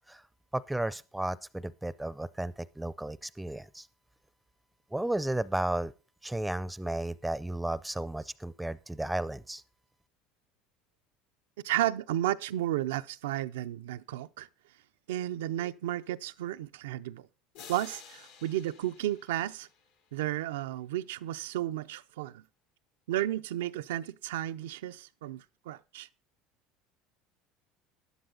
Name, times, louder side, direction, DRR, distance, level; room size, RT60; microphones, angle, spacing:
voice 1, 0.5-3.9 4.9-5.9 6.2-9.6, right 1 dB, 5° right, 0.5 m, -33 dB
voice 2, 11.6-14.5 15.1-17.3 17.7-19.7 20.1-22.4 23.1-26.1, right 13 dB, 90° right, 0.5 m, -33 dB
sound 1, 17.5-20.2, left 7 dB, 85° left, 3.2 m, -52 dB
12.0 x 11.0 x 3.9 m
supercardioid pair, 100°, 0 cm